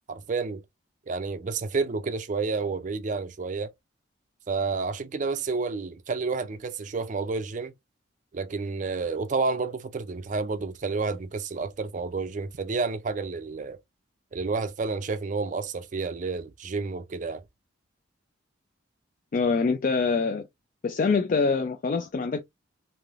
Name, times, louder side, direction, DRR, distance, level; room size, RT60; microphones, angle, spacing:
voice 1, 0.1-0.6 1.1-3.7 4.5-7.7 8.3-13.8 14.3-17.4, right 4 dB, 40° right, 0.4 m, -30 dB
voice 2, 19.3-20.4 20.8-22.4, left 4 dB, 40° left, 0.3 m, -24 dB
3.2 x 2.7 x 2.4 m
head